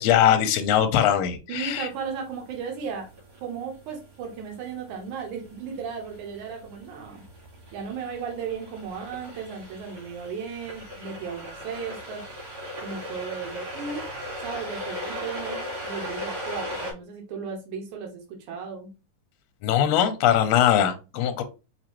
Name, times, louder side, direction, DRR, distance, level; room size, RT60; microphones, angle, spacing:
voice 1, 0.0-1.9 19.6-21.4, left 10 dB, 80° left, 1.6 m, -21 dB
sound 1, 1.5-16.9, equal, 55° right, 3.1 m, -39 dB
voice 2, 1.5-3.1 3.4-7.2 7.7-12.2 12.8-14.0 14.4-18.9, right 6 dB, 80° right, 2.5 m, -35 dB
6.0 x 2.7 x 2.9 m
omnidirectional pair, 3.5 m